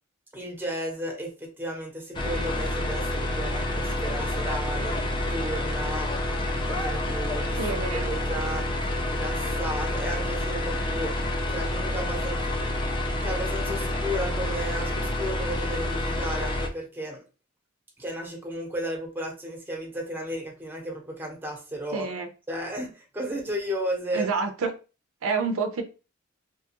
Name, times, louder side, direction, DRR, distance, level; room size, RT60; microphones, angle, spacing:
voice 1, 0.3-6.2 6.5-7.6 7.9-8.7 9.1-11.1 11.5-12.4 13.2-17.2 18.0-22.1 22.5-24.3, equal, 10° right, 0.8 m, -34 dB
sound 1, 2.1-16.7, left 1 dB, 25° left, 0.4 m, -28 dB
voice 2, 7.6-8.1 21.9-22.3 24.1-24.7 25.2-25.8, right 4 dB, 75° right, 0.4 m, -28 dB
2.8 x 2.3 x 2.8 m
head